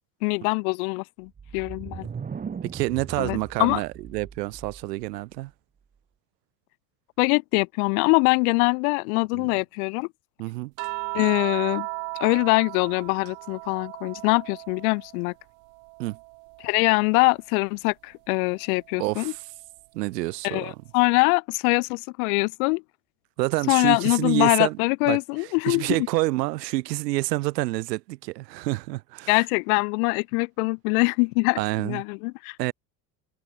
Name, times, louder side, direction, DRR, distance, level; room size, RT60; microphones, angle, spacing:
voice 1, 0.2-2.1 3.2-3.8 7.2-10.1 11.1-11.9 12.2-15.3 16.6-19.3 20.4-22.8 23.7-26.1 29.3-31.6 31.8-32.6, left 33 dB, 65° left, 0.5 m, -23 dB
sound 1, 1.3-5.1, right 6 dB, 20° right, 0.9 m, -38 dB
voice 2, 2.6-5.5 9.3-9.5 10.4-10.7 16.0-16.2 19.0-19.4 19.9-20.8 23.4-24.8 25.1-29.3 31.6-32.0 32.6-32.7, right 19 dB, 80° right, 0.7 m, -28 dB
sound 2, 10.8-15.3 15.6-17.3 18.8-18.9, right 40 dB or more, 65° right, 1.6 m, -36 dB
hypercardioid pair, 80°, 48 cm